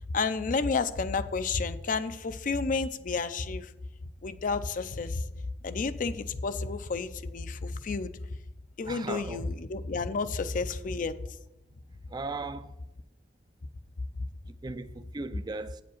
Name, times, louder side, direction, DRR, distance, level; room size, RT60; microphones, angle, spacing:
voice 1, 0.1-3.7 4.2-5.2 5.6-8.1 8.8-11.1, left 4 dB, 50° left, 0.5 m, -31 dB
voice 2, 8.9-9.4 12.1-12.7 14.6-15.8, right 3 dB, 25° right, 0.4 m, -37 dB
8.4 x 5.0 x 7.1 m
head